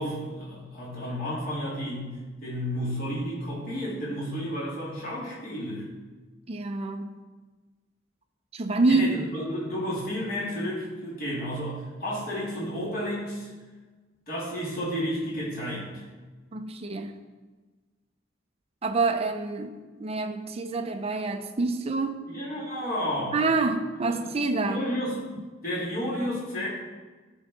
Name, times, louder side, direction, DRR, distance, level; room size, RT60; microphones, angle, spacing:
voice 1, 0.0-5.8 8.9-13.5 14.3-16.0 22.3-23.4 24.0-24.2 24.6-25.2 25.6-26.7, equal, 50° left, -6 dB, 3.2 m, -32 dB
voice 2, 6.5-7.1 8.5-9.2 16.5-17.1 18.8-22.2 23.3-24.8, right 3 dB, 30° right, 5 dB, 0.5 m, -27 dB
12.5 x 4.6 x 4.6 m, 1.3 s
head